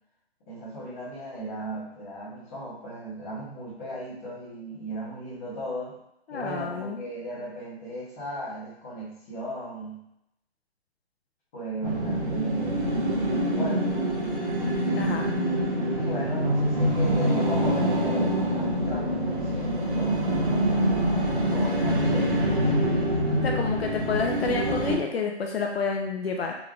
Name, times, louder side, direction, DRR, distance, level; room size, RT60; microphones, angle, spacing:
voice 1, 0.5-6.0 6.3-10.0 11.5-12.9 13.6-14.0 15.9-20.4 21.4-22.6, right 1 dB, 15° left, -10 dB, 0.9 m, -36 dB
voice 2, 6.3-7.0 15.0-15.3 23.4-26.6, left 4 dB, 65° left, 1 dB, 0.6 m, -29 dB
sound 1, 11.8-24.9, equal, 50° right, 1.5 m, -25 dB
3.7 x 3.1 x 2.4 m, 0.79 s
hypercardioid pair, 175°, 33 cm